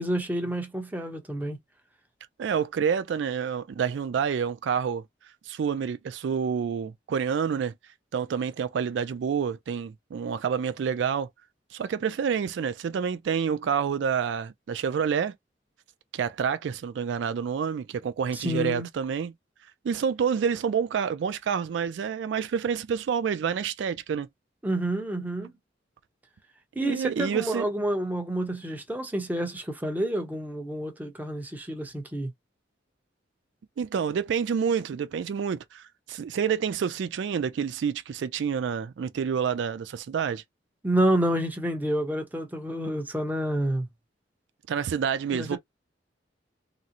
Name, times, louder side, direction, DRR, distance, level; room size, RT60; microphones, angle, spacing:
voice 1, 0.0-1.6 18.3-18.9 24.6-25.5 26.7-32.3 40.8-43.9 45.3-45.6, right 1 dB, 10° right, 0.8 m, -29 dB
voice 2, 2.4-5.0 5.5-7.7 8.1-11.3 11.7-15.3 16.1-19.3 19.8-24.3 26.8-27.6 33.8-40.4 44.7-45.6, right 7 dB, 75° right, 0.3 m, -28 dB
3.8 x 2.0 x 2.8 m
head